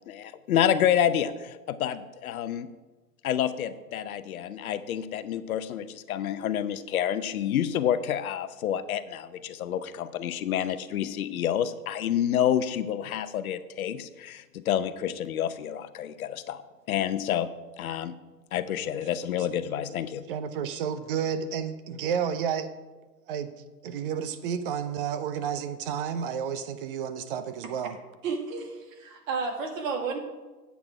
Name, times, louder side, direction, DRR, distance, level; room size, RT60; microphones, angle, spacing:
voice 1, 0.1-2.7 3.2-16.6 16.9-17.5 17.8-18.1 18.5-20.2, left 10 dB, 60° left, 0.8 m, -28 dB
voice 2, 20.3-22.7 23.3-23.5 23.8-28.0, right 7 dB, 35° right, 0.7 m, -31 dB
voice 3, 28.2-30.2, right 4 dB, 50° right, 2.2 m, -32 dB
8.7 x 8.2 x 4.8 m
hypercardioid pair, 125°, 49 cm